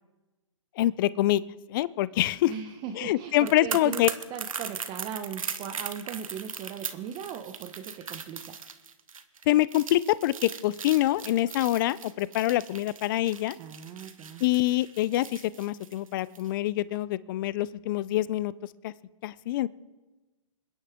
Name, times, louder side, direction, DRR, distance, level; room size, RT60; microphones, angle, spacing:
voice 1, 0.8-1.4 1.7-2.5 3.0-4.1 9.5-13.6 14.4-18.5 18.8-18.9 19.2-19.7, left 15 dB, 40° left, 19 dB, 0.5 m, -25 dB
voice 2, 2.5-4.0 4.3-8.6 13.6-14.5, right 8 dB, 25° right, 7 dB, 0.8 m, -38 dB
sound 1, 3.3-16.5 16.8-17.0, right 6 dB, 85° right, 1.2 m, -39 dB
27.5 x 10.5 x 3.6 m, 1.2 s
hypercardioid pair, 130°, 17 cm